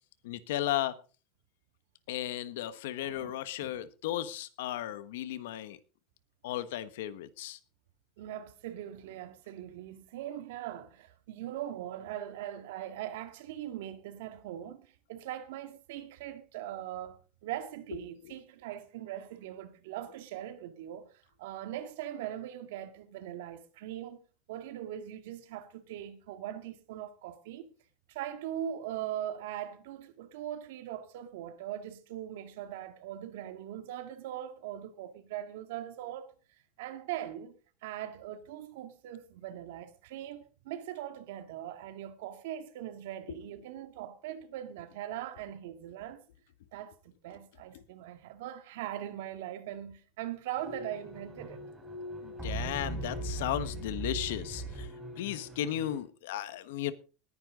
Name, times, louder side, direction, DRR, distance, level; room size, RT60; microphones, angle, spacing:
voice 1, 0.2-1.0 2.1-5.8 6.4-7.6 18.2-18.3 43.3-43.4 47.7-47.8 52.2-54.9 55.2-56.9, left 12 dB, 85° left, 1.3 m, -35 dB
voice 2, 3.0-3.3 3.6-3.7 8.2-24.2 24.5-27.7 28.1-36.3 36.8-37.5 37.8-46.2 46.7-51.6, right 11 dB, 75° right, 2.0 m, -41 dB
sound 1, 50.6-56.0, right 1 dB, 10° right, 3.9 m, -39 dB
20.0 x 10.0 x 3.8 m
supercardioid pair, 180°, 0 cm